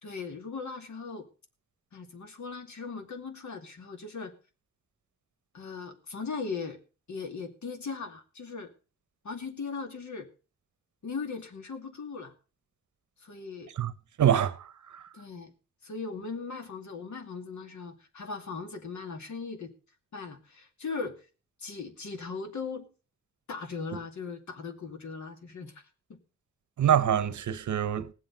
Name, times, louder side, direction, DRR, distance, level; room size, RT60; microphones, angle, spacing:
voice 1, 0.0-1.3 1.9-4.3 5.5-6.8 7.1-8.7 9.2-10.3 11.0-12.3 13.2-13.7 15.1-15.5 15.8-19.7 20.1-21.3 21.6-22.9 23.5-25.8 26.1-26.2, left 4 dB, 75° left, 2.5 m, -38 dB
voice 2, 14.2-15.1 26.8-28.1, right 9 dB, 90° right, 1.0 m, -25 dB
19.0 x 7.8 x 5.2 m
wide cardioid pair, 110°, 29 cm